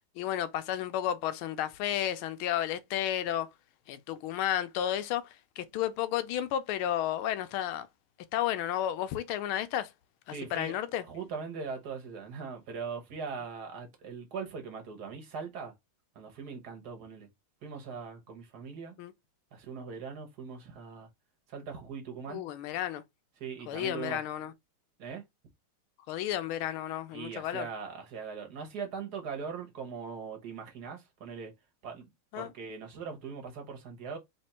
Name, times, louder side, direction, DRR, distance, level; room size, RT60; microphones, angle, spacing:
voice 1, 0.2-3.5 3.9-7.9 8.3-9.9 10.3-11.0 19.0-19.1 22.3-23.0 23.7-24.5 26.1-27.7 32.3-32.5, left 11 dB, 80° left, 1.4 m, -32 dB
voice 2, 10.3-10.7 11.1-15.7 16.1-17.3 17.6-19.0 19.5-21.1 21.5-22.4 23.4-24.2 25.0-25.2 27.1-31.5 31.8-32.1 32.3-34.2, right 5 dB, 55° right, 1.4 m, -40 dB
3.5 x 3.3 x 4.2 m
omnidirectional pair, 2.4 m